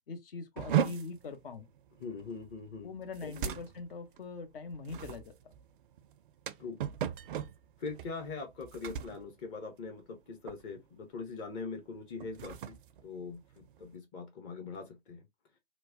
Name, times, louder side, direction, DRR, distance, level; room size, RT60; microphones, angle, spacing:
voice 1, 0.1-1.7 2.8-5.3, left 4 dB, 60° left, 0.9 m, -42 dB
sound 1, 0.6-10.2 10.5-10.9 11.2-11.5 12.1-14.0, right 9 dB, 55° right, 0.4 m, -38 dB
voice 2, 2.0-2.9 3.2-3.3 6.6-6.8 7.8-15.2, left 4 dB, 30° left, 0.7 m, -42 dB
3.0 x 2.1 x 2.5 m
figure-of-eight pair, 110°, 32 cm